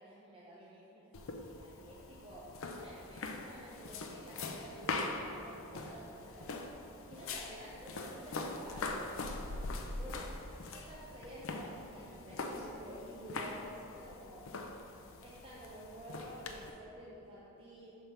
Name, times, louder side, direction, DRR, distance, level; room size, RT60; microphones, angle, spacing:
voice 1, 0.0-6.7 7.1-9.6 10.0-10.3 10.7-14.5 15.2-17.9, equal, 25° right, -7 dB, 0.6 m, -51 dB
sound 1, 1.1-16.7, left 3 dB, 60° left, 0.5 m, -42 dB
5.1 x 4.5 x 5.6 m, 2.9 s
head